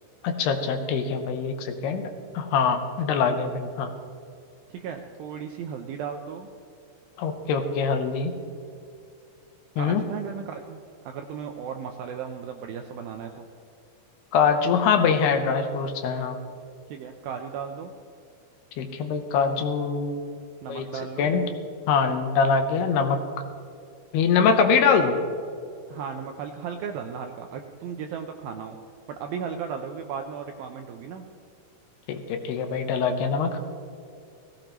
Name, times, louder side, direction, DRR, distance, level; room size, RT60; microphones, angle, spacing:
voice 1, 0.2-2.1 2.3-3.9 7.2-8.3 9.8-10.0 14.3-16.4 18.8-20.2 20.7-20.9 21.2-21.4 21.9-23.2 24.1-25.2 32.1-33.6, left 5 dB, 80° left, 6 dB, 2.8 m, -23 dB
voice 2, 4.7-6.5 9.8-10.8 11.1-13.5 16.9-17.9 20.6-21.3 25.9-28.8 29.1-31.2, right 7 dB, 85° right, 4 dB, 2.1 m, -35 dB
18.0 x 16.0 x 3.0 m, 2.4 s
omnidirectional pair, 4.9 m